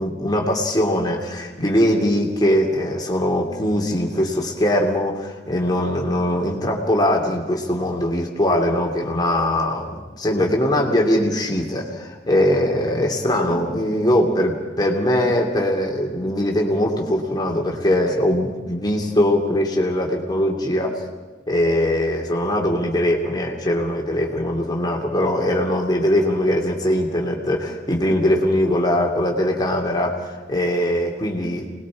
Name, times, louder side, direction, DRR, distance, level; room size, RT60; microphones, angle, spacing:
voice 1, 0.0-21.0 21.5-31.7, left 1 dB, 25° left, 0 dB, 2.7 m, -21 dB
28.0 x 20.5 x 4.8 m, 1.3 s
head